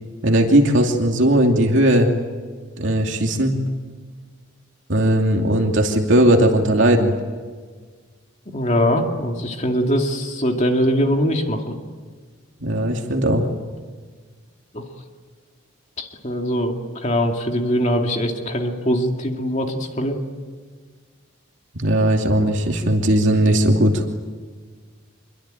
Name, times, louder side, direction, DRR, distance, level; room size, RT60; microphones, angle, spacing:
voice 1, 0.2-2.1 2.8-3.5 4.9-7.1 12.6-13.4 21.8-24.0, right 1 dB, 65° right, 1 dB, 2.7 m, -17 dB
voice 2, 8.5-11.7 14.7-14.8 16.0-16.7 17.0-20.2, equal, 35° left, 2 dB, 2.5 m, -22 dB
27.0 x 23.5 x 9.1 m, 1.5 s
head